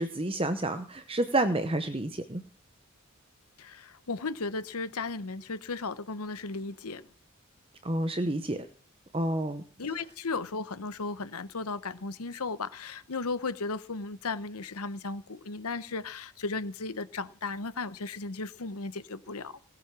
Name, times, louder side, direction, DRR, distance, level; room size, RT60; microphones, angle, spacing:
voice 1, 0.0-2.4 7.8-8.7 9.1-9.6, right 1 dB, 25° right, 0.8 m, -29 dB
voice 2, 3.6-7.1 9.8-19.6, left 3 dB, 85° left, 1.0 m, -35 dB
18.0 x 8.9 x 6.1 m
head